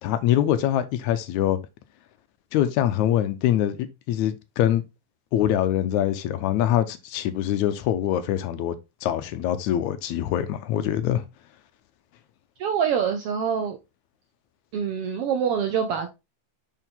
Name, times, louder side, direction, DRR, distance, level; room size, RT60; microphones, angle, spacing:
voice 1, 0.0-1.6 2.5-3.8 4.1-4.8 5.3-8.7 9.0-11.2, left 11 dB, 85° left, 2.1 m, -24 dB
voice 2, 12.6-13.8 14.7-16.1, right 7 dB, 75° right, 1.4 m, -25 dB
6.3 x 4.6 x 3.7 m
omnidirectional pair, 3.4 m